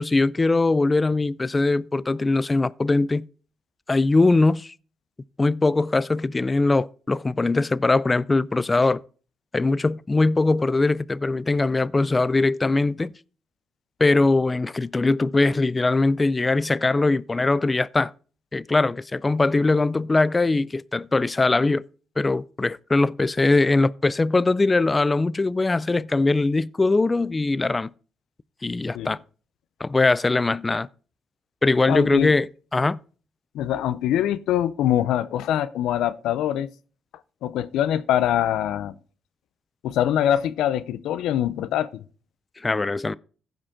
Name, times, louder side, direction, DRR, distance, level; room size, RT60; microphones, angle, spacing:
voice 1, 0.0-3.2 3.9-4.7 5.4-9.0 9.5-13.1 14.0-18.1 18.5-21.8 22.2-27.9 28.6-29.2 29.8-30.9 31.6-33.0 42.6-43.2, left 3 dB, 20° left, 0.3 m, -21 dB
voice 2, 31.9-32.4 33.5-36.7 37.4-38.9 39.8-42.0, left 11 dB, 85° left, 0.5 m, -23 dB
15.5 x 5.1 x 3.7 m
cardioid pair, 90°, 0 cm